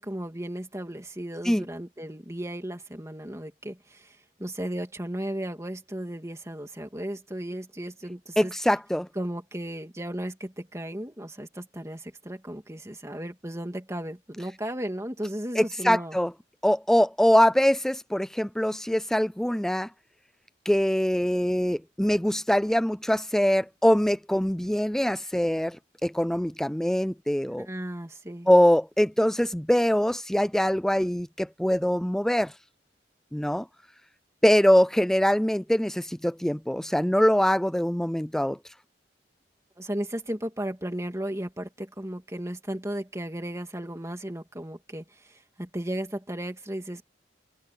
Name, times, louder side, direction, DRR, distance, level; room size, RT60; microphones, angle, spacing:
voice 1, 0.0-8.5 9.2-16.2 27.6-28.5 39.8-47.0, right 1 dB, 15° right, 2.8 m, -35 dB
voice 2, 8.4-9.1 15.6-16.3 16.6-19.9 20.7-25.8 26.0-27.7 28.5-32.5 33.3-33.7 34.4-38.6, equal, 5° left, 0.3 m, -23 dB
head